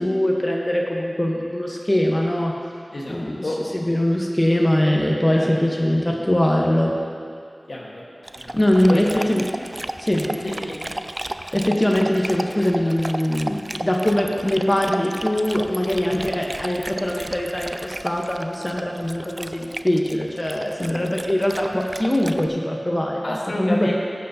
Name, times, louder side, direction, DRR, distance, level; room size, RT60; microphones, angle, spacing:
voice 1, 0.0-2.5 3.1-3.4 3.7-6.9 8.5-9.5 10.0-10.3 11.5-24.0, left 1 dB, 25° left, -1 dB, 1.0 m, -22 dB
voice 2, 2.9-3.6 5.3-5.5 7.7-8.0 8.3-8.6 8.9-9.3 10.1-11.0 16.1-16.3 23.2-24.0, left 1 dB, 75° left, -4 dB, 1.5 m, -30 dB
Dog, 8.2-22.5, right 1 dB, 40° right, 0.3 m, -34 dB
14.5 x 8.1 x 2.8 m, 2.3 s
wide cardioid pair, 45°, 0 cm